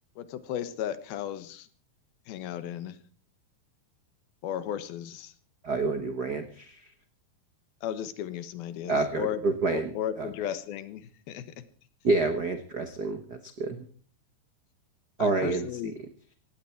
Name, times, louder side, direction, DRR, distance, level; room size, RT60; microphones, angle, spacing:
voice 1, 0.2-1.7 2.3-3.0 4.4-5.3 7.8-11.4 15.2-15.9, left 10 dB, 85° left, 13 dB, 3.1 m, -35 dB
voice 2, 5.6-6.6 8.9-9.9 10.2-10.3 12.0-13.8 15.2-15.7, right 3 dB, 90° right, 8 dB, 0.8 m, -28 dB
17.0 x 17.0 x 4.6 m, 0.43 s
omnidirectional pair, 4.2 m